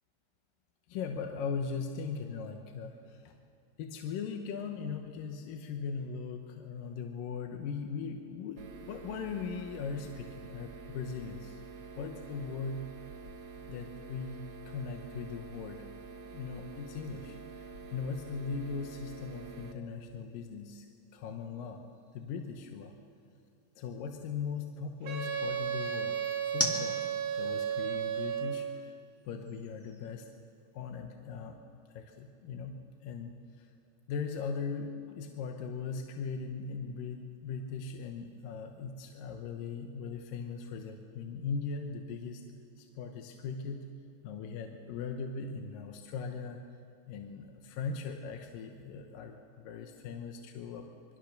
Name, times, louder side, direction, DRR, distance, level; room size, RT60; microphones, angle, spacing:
voice 1, 0.9-3.4 3.8-11.6 12.0-12.9 13.7-15.9 16.3-20.9 21.1-21.9 22.1-22.9 23.8-27.0 27.3-29.0 29.2-30.3 30.7-31.6 31.9-33.7 34.1-42.4 42.8-43.9 44.2-46.6 47.1-50.9, left 5 dB, 75° left, 4 dB, 2.6 m, -39 dB
sound 1, 8.6-19.7, right 4 dB, 50° right, 1.8 m, -48 dB
sound 2, 16.8-31.0, equal, 5° left, 1.4 m, -45 dB
Wind instrument woodwind instrument, 25.1-28.8, right 8 dB, 85° right, 3.3 m, -34 dB
25.0 x 23.0 x 6.6 m, 2.5 s
omnidirectional pair, 4.1 m